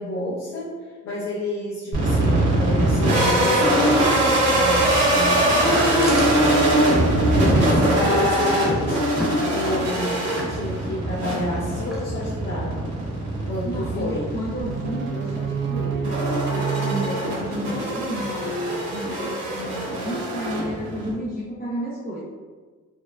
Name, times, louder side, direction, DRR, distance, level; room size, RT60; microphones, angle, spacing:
voice 1, 0.0-5.9 6.3-7.0 7.3-9.0 9.4-12.8 13.5-14.3, left 1 dB, 55° left, -8 dB, 1.0 m, -30 dB
sound 1, 1.9-21.1, right 1 dB, 65° right, 1.3 m, -22 dB
Chewing mastication, 5.6-12.7, equal, ahead, 0.7 m, -35 dB
voice 2, 13.6-22.2, equal, 30° left, -8 dB, 0.8 m, -31 dB
sound 2, 14.6-18.7, right 7 dB, 40° right, 0.4 m, -29 dB
4.3 x 2.3 x 2.5 m, 1.4 s
cardioid pair, 90°, 30 cm